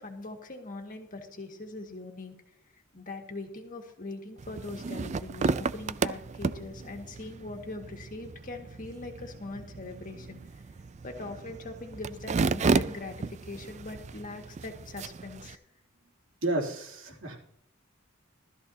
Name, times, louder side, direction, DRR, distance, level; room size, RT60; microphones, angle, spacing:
voice 1, 0.0-2.3 2.9-10.4 11.0-15.6 17.1-17.2, left 2 dB, 40° left, 3 dB, 1.9 m, -41 dB
sound 1, 4.4-15.5, right 4 dB, 35° right, 0.3 m, -33 dB
voice 2, 16.4-17.4, right 2 dB, 70° right, -1 dB, 2.9 m, -31 dB
15.5 x 13.5 x 2.8 m, 0.72 s
head